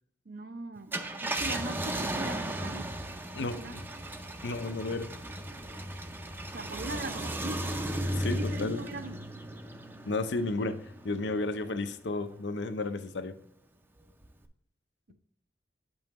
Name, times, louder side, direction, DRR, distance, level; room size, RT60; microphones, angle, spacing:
voice 1, 0.3-2.9 3.4-3.8 6.5-7.8 8.3-9.2, right 2 dB, 60° right, 0.6 m, -40 dB
Car, 0.8-11.6 12.1-12.2 14.2-14.5, right 1 dB, 10° right, 0.5 m, -36 dB
voice 2, 3.3-3.8 4.4-5.2 8.2-8.8 10.0-13.4, left 2 dB, 85° left, 0.6 m, -33 dB
7.8 x 5.5 x 3.0 m
head